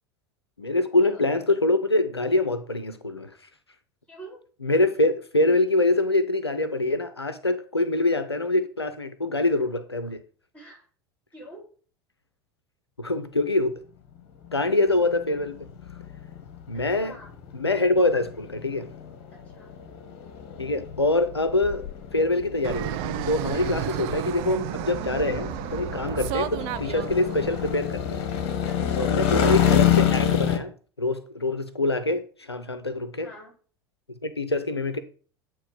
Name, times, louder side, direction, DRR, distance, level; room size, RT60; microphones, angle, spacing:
voice 1, 0.6-3.3 4.6-10.2 13.0-13.8 14.5-15.7 16.7-17.2 17.5-18.9 20.6-28.2 29.0-33.3 34.2-35.0, left 2 dB, 90° left, 0.5 m, -25 dB
voice 2, 4.1-4.4 10.5-10.8 11.3-11.6 16.7-17.3 19.3-19.8 23.8-24.1 28.7-29.2 33.2-33.5, right 1 dB, 10° left, 4.1 m, -46 dB
sound 1, 14.5-30.6, left 9 dB, 50° left, 1.1 m, -28 dB
Fixed-wing aircraft airplane, 22.6-27.8, right 15 dB, 45° right, 0.4 m, -32 dB
8.7 x 3.0 x 5.2 m
figure-of-eight pair, 75°, 13 cm